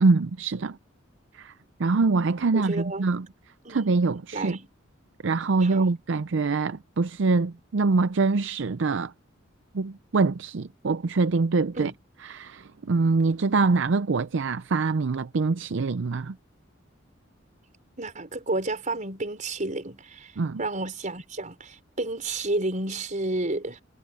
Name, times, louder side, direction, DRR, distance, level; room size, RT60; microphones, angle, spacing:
voice 1, 0.0-0.8 1.3-1.5 1.8-3.3 3.7-4.6 5.2-9.1 9.7-11.9 12.2-16.3 20.4-20.6, right 3 dB, 65° right, 0.5 m, -24 dB
voice 2, 2.5-3.0 3.6-3.8 4.3-4.7 5.6-5.9 11.8-12.0 18.0-20.3 20.6-23.8, right 2 dB, 40° right, 5.0 m, -31 dB
head